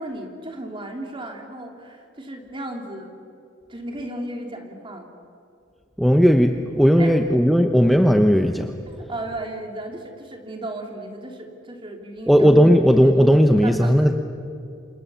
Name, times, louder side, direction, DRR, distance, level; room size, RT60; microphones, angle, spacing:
voice 1, 0.0-3.1 3.7-5.1 7.0-7.2 8.8-12.5 13.0-13.1 13.6-14.1, right 1 dB, 25° right, 3 dB, 3.2 m, -35 dB
voice 2, 6.0-8.7 12.3-14.1, equal, ahead, 5 dB, 0.9 m, -16 dB
28.5 x 25.5 x 7.1 m, 2.5 s
head